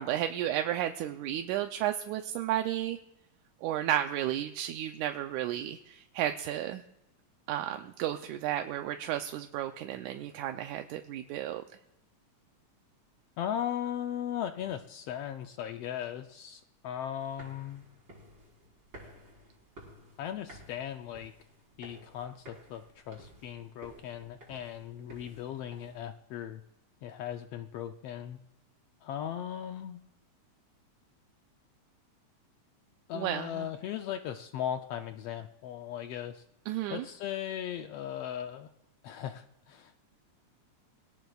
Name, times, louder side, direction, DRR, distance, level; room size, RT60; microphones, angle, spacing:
voice 1, 0.0-3.0 3.6-6.8 7.5-11.6 33.1-33.5 36.7-37.0, right 12 dB, 85° right, 6 dB, 2.0 m, -33 dB
voice 2, 13.4-17.8 20.2-21.3 21.8-26.6 27.0-28.4 29.0-30.0 33.1-36.4 36.9-38.7 39.0-39.9, left 10 dB, 85° left, 7 dB, 1.3 m, -38 dB
sound 1, 17.2-26.0, equal, 40° right, 5.0 m, -54 dB
23.0 x 17.0 x 2.4 m, 0.87 s
omnidirectional pair, 3.5 m